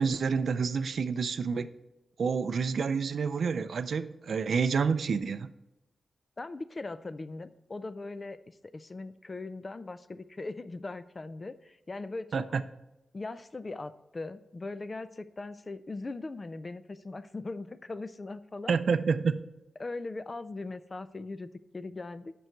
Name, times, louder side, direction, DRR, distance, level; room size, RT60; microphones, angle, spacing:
voice 1, 0.0-1.7 2.2-5.5 12.3-12.6 18.7-19.4, right 5 dB, 60° right, 12 dB, 0.4 m, -28 dB
voice 2, 6.4-12.5 13.1-18.7 19.8-22.3, left 3 dB, 25° left, 14 dB, 0.3 m, -40 dB
9.2 x 6.2 x 4.5 m, 0.92 s
wide cardioid pair, 160°, 0 cm